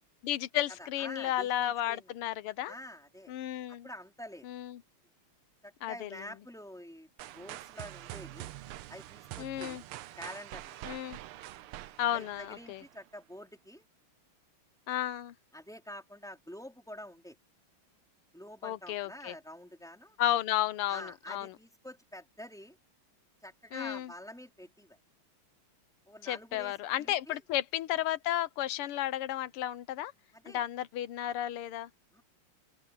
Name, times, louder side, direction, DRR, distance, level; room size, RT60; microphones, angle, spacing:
voice 1, 0.2-2.7 3.3-3.9 4.4-4.8 5.8-6.2 9.4-9.8 10.9-11.2 12.0-12.8 14.9-15.3 18.6-19.3 20.2-21.5 23.7-24.1 26.2-30.1 30.5-31.9, left 12 dB, 90° left, 1.7 m, -33 dB
voice 2, 0.8-2.1 2.7-3.3 3.7-4.5 5.6-8.5 8.9-9.8 10.2-10.8 12.1-13.8 15.5-17.4 18.3-20.2 20.9-22.8 23.4-25.0 26.1-27.4 30.3-30.6 32.1-32.2, left 1 dB, ahead, 4.4 m, -47 dB
sound 1, 7.2-13.1, right 15 dB, 80° right, 1.6 m, -45 dB
open air
omnidirectional pair, 2.4 m